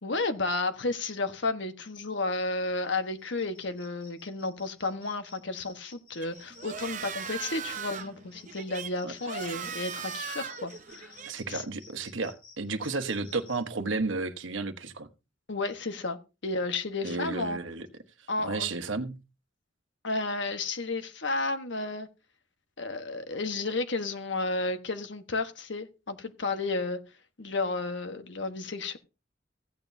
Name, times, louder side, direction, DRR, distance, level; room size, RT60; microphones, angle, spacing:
voice 1, 0.0-11.1 11.5-11.6 15.5-17.6 18.3-18.7 20.0-22.1 22.8-27.0 27.4-29.0, left 3 dB, 65° left, 1.2 m, -32 dB
sound 1, 2.1-13.6, left 4 dB, 45° left, 4.4 m, -54 dB
sound 2, 6.2-11.3, right 7 dB, 40° right, 0.7 m, -39 dB
voice 2, 11.2-15.1 17.0-17.9 18.4-19.2, right 3 dB, 80° right, 1.1 m, -32 dB
15.5 x 9.1 x 2.7 m
head